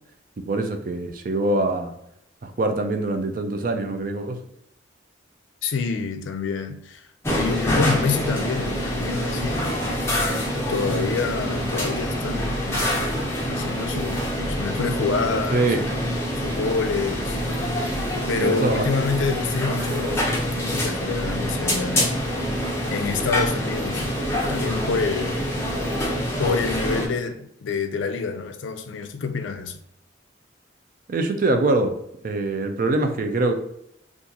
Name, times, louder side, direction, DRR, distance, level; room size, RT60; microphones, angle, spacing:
voice 1, 0.4-1.9 2.4-4.4 15.5-15.8 18.4-18.9 31.1-32.0 32.2-33.5, right 2 dB, 45° right, 0.4 m, -23 dB
voice 2, 5.6-7.1 7.4-9.7 10.7-13.1 13.5-15.7 16.4-17.4 18.3-22.1 22.9-24.0 24.5-25.4 26.4-29.8, left 4 dB, 80° left, 0.4 m, -27 dB
sound 1, 7.2-27.1, equal, 15° left, 0.7 m, -26 dB
2.8 x 2.4 x 3.7 m
head